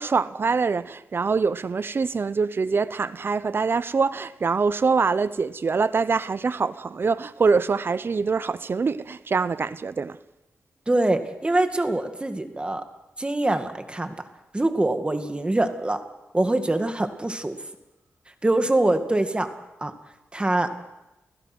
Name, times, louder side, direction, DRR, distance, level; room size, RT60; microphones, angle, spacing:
voice 1, 0.0-10.2, right 4 dB, 50° right, 0.8 m, -24 dB
voice 2, 10.9-12.8 13.2-14.2 14.5-16.0 16.3-17.6 18.4-19.5 19.8-19.9 20.3-20.7, right 2 dB, 20° right, 2.1 m, -24 dB
29.5 x 16.0 x 6.2 m
cardioid pair, 70°, 5 cm